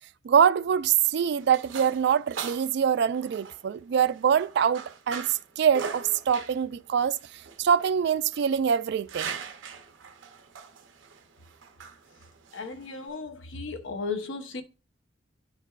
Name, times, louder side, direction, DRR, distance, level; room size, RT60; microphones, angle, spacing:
voice 1, 0.2-7.2 7.6-9.4, right 8 dB, 60° right, 0.3 m, -24 dB
sound 1, 0.8-13.1, right 6 dB, 80° right, 0.7 m, -42 dB
voice 2, 12.5-14.6, left 4 dB, 90° left, 0.9 m, -35 dB
9.6 x 4.6 x 2.4 m
head